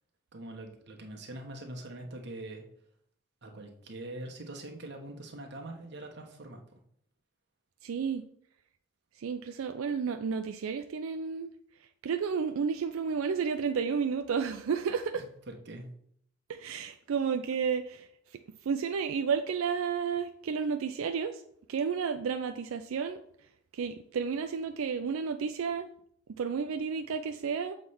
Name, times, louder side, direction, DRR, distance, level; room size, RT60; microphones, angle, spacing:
voice 1, 0.3-2.7 3.4-6.8 15.2-15.9, right 1 dB, 55° right, 2 dB, 1.1 m, -43 dB
voice 2, 7.8-8.2 9.2-11.5 12.0-15.2 16.5-21.4 21.7-23.2 23.7-25.9 26.4-27.8, right 6 dB, 85° right, 8 dB, 0.4 m, -32 dB
7.2 x 3.2 x 5.6 m, 0.69 s
head